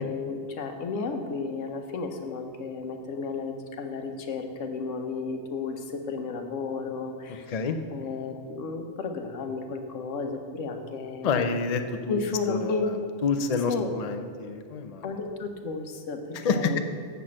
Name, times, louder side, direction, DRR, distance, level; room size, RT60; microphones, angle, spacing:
voice 1, 0.0-7.6 7.9-11.5 12.1-12.9 13.7-14.0 15.0-16.8, left 4 dB, 75° left, 5 dB, 1.2 m, -33 dB
voice 2, 11.2-12.2 12.5-12.9 13.2-15.0 16.4-16.8, left 5 dB, 55° left, 7 dB, 0.4 m, -28 dB
6.8 x 6.1 x 7.4 m, 2.1 s
omnidirectional pair, 1.3 m